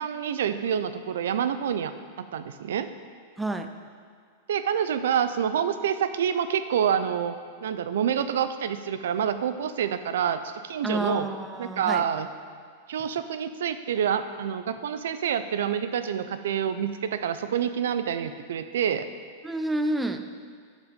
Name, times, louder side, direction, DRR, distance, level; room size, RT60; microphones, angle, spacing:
voice 1, 0.0-1.9 2.3-2.9 4.5-7.3 7.6-11.3 11.6-12.3 12.9-19.1, right 8 dB, 85° right, 11 dB, 0.6 m, -27 dB
voice 2, 3.4-3.7 10.8-12.0 19.4-20.2, right 1 dB, 5° right, 7 dB, 0.5 m, -29 dB
12.0 x 5.1 x 5.2 m, 2.1 s
supercardioid pair, 150°, 0 cm